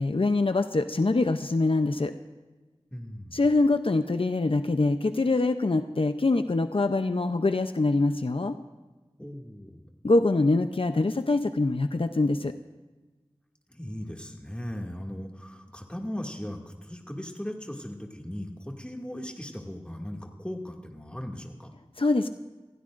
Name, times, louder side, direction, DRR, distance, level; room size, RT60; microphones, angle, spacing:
voice 1, 0.0-2.1 3.3-8.6 10.0-12.5 22.0-22.3, left 2 dB, 70° left, 8 dB, 0.6 m, -24 dB
voice 2, 2.9-3.4 9.2-9.8 13.7-21.7, equal, 10° left, 1 dB, 2.2 m, -38 dB
26.0 x 16.0 x 2.6 m, 1.2 s
wide cardioid pair, 40°, 10 cm